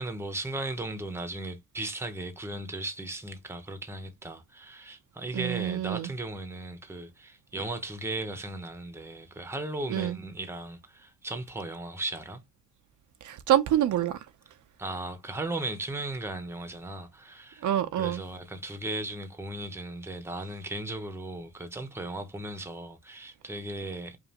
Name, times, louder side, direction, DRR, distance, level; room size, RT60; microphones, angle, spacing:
voice 1, 0.0-12.4 14.8-17.7 18.0-24.2, right 2 dB, 10° right, 0.7 m, -36 dB
voice 2, 5.3-6.1 9.9-10.2 13.2-14.3 17.6-18.2, right 11 dB, 75° right, 0.6 m, -26 dB
5.2 x 2.4 x 2.9 m
wide cardioid pair, 140°, 30 cm